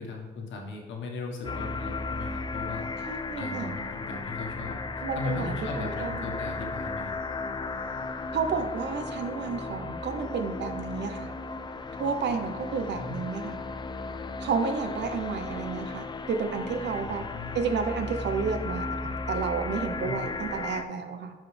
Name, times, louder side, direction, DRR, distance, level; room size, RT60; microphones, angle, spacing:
voice 1, 0.0-7.1 12.9-13.2 17.0-17.6 20.0-20.3, left 3 dB, 75° left, 1 dB, 1.4 m, -37 dB
sound 1, 1.4-20.8, left 3 dB, 25° left, 0.4 m, -35 dB
voice 2, 3.1-3.7 5.0-6.3 8.3-11.3 12.0-13.6 14.4-17.2 17.5-21.3, right 5 dB, 65° right, 7 dB, 0.8 m, -31 dB
9.3 x 4.2 x 3.3 m, 1.2 s
cardioid pair, 90°, 20 cm